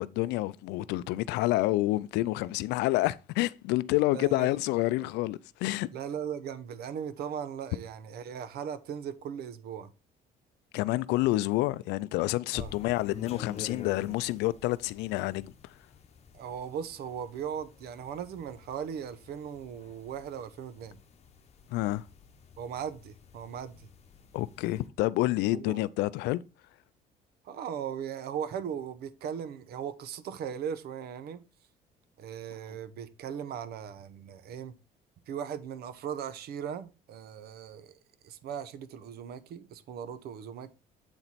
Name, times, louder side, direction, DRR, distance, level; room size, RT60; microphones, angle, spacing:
voice 1, 0.0-5.9 10.7-15.7 21.7-22.1 24.3-26.4, left 18 dB, 90° left, 0.4 m, -28 dB
voice 2, 4.1-4.5 5.9-9.9 12.5-12.7 16.3-21.0 22.6-23.9 25.5-25.8 27.4-31.4 32.2-34.7 35.3-38.0 38.2-40.7, right 8 dB, 70° right, 0.9 m, -38 dB
sound 1, 12.5-24.9, left 6 dB, 40° left, 1.0 m, -49 dB
7.9 x 4.4 x 4.1 m
cardioid pair, 110°, 17 cm